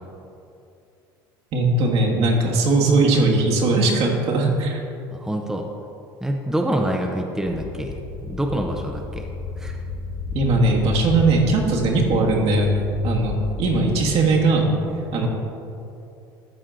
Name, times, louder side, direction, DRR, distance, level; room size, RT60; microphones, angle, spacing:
voice 1, 1.5-4.8 10.3-14.7 15.1-15.3, right 2 dB, 55° right, -1 dB, 1.5 m, -19 dB
voice 2, 5.1-5.7 6.2-8.0 8.2-9.3 9.6-9.8, right 1 dB, 5° right, 2 dB, 0.7 m, -26 dB
sound 1, 7.5-14.3, left 5 dB, 55° left, 0.8 m, -33 dB
12.5 x 4.4 x 3.8 m, 2.7 s
hypercardioid pair, 75°, 12 cm